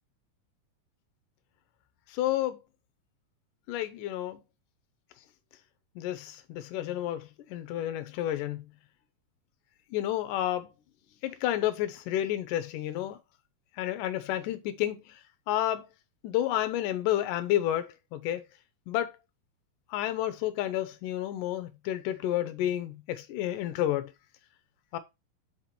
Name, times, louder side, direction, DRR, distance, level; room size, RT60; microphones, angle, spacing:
voice 1, 2.1-2.6 3.7-4.4 6.0-8.6 9.9-10.7 11.2-13.2 13.8-15.2 15.5-15.9 16.2-18.5 18.9-19.2 19.9-24.1 24.9-25.0, left 13 dB, 75° left, 2.1 m, -30 dB
5.9 x 4.3 x 4.3 m
omnidirectional pair, 4.3 m